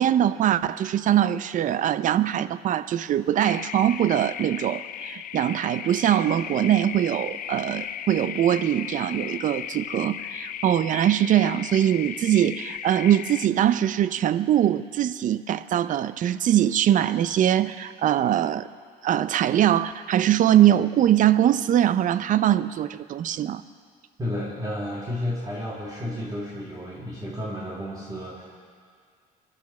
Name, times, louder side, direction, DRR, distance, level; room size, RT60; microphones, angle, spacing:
voice 1, 0.0-18.7 19.0-23.6, right 11 dB, 50° right, 15 dB, 0.5 m, -22 dB
sound 1, 3.4-13.5, left 10 dB, 55° left, 0.5 m, -36 dB
voice 2, 24.2-28.5, left 1 dB, 20° right, -4 dB, 2.1 m, -32 dB
23.0 x 12.0 x 4.3 m, 2.1 s
cardioid pair, 110°, 17 cm